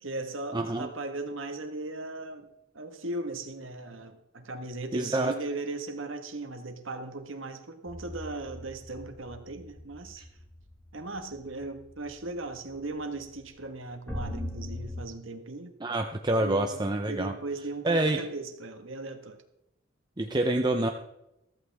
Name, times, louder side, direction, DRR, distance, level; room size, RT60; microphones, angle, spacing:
voice 1, 0.0-2.5 2.7-10.3 10.9-15.8 16.4-19.4, right 2 dB, 75° right, 1.6 m, -38 dB
voice 2, 0.5-0.9 4.9-5.3 15.8-17.3 17.8-18.2 20.2-20.9, right 2 dB, 20° right, 0.8 m, -27 dB
sound 1, 7.9-12.4 12.7-12.8 13.2-13.4 14.1-15.0, left 1 dB, 10° left, 1.9 m, -40 dB
14.5 x 14.5 x 3.6 m
head